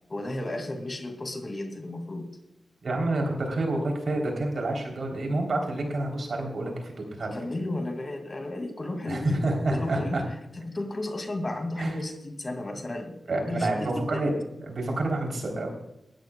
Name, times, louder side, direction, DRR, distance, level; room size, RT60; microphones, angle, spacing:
voice 1, 0.1-2.4 7.2-10.2 10.6-14.2, left 1 dB, 40° left, 5 dB, 2.3 m, -33 dB
voice 2, 2.8-7.3 9.1-10.2 11.8-12.0 13.3-14.3 14.6-15.7, right 2 dB, 70° right, 2 dB, 3.5 m, -28 dB
19.0 x 13.0 x 2.3 m, 0.85 s
cardioid pair, 60°, 0 cm